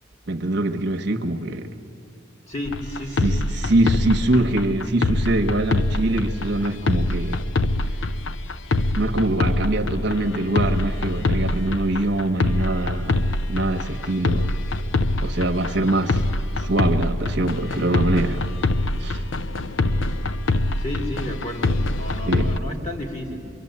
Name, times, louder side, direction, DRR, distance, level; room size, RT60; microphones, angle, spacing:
voice 1, 0.3-1.7 3.2-7.4 9.0-13.2 13.5-14.5 15.2-16.2 16.6-18.4 18.9-19.2 22.3-22.5, right 2 dB, 60° right, 1.3 m, -23 dB
voice 2, 2.5-3.4 20.8-23.4, left 1 dB, 35° left, 2.7 m, -32 dB
sound 1, 2.6-22.6, left 2 dB, 75° left, 0.8 m, -24 dB
24.5 x 24.5 x 8.8 m
head